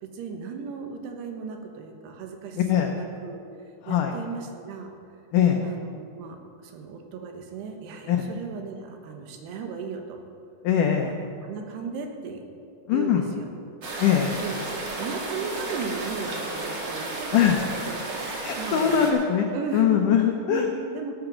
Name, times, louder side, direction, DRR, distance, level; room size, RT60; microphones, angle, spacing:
voice 1, 0.0-3.4 3.9-4.9 5.6-10.2 11.0-12.4 12.9-13.5 14.4-14.7 14.9-17.6 17.9-18.1 18.6-19.1 19.5-20.0 20.5-21.1, right 5 dB, 85° right, 4 dB, 3.3 m, -36 dB
voice 2, 2.6-2.9 3.8-4.1 5.3-5.6 8.1-8.2 10.6-11.1 12.9-13.2 14.0-14.4 17.3-17.6 18.4-19.5 19.7-20.7, left 9 dB, 90° left, 3 dB, 1.8 m, -21 dB
sound 1, 13.8-19.1, right 2 dB, 60° right, 1.1 m, -33 dB
13.5 x 8.8 x 6.1 m, 2.5 s
omnidirectional pair, 4.7 m